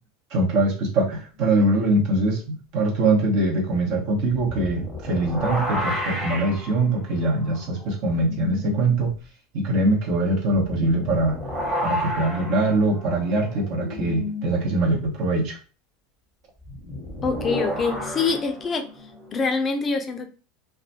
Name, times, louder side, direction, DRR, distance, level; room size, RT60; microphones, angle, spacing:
voice 1, 0.3-9.1 9.5-11.4 11.8-15.6, right 2 dB, 60° right, -1 dB, 1.0 m, -23 dB
sound 1, 4.5-8.8 9.2-9.3 10.5-14.5 16.6-19.5, left 1 dB, 20° right, 1.2 m, -32 dB
voice 2, 17.2-18.8 19.3-20.3, left 4 dB, 30° left, 5 dB, 0.4 m, -25 dB
2.4 x 2.3 x 2.7 m, 0.34 s
hypercardioid pair, 90°, 0 cm